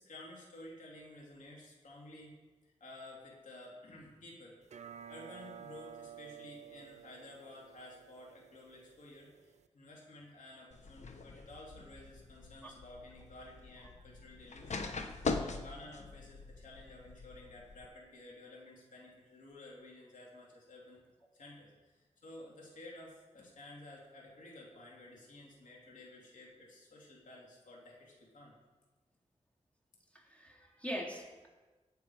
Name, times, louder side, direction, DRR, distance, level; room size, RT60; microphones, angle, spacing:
voice 1, 0.0-2.4 2.6-4.6 5.1-14.9 15.1-21.0 21.3-28.5, left 1 dB, 90° left, -3 dB, 3.1 m, -53 dB
sound 1, 4.6-9.7, right 9 dB, 65° right, 0.6 m, -53 dB
sound 2, 10.7-17.9, left 4 dB, 70° left, 1.1 m, -42 dB
voice 2, 30.1-31.5, equal, 10° left, -2 dB, 3.3 m, -43 dB
19.0 x 6.9 x 4.9 m, 1.2 s
cardioid pair, 65°, 13 cm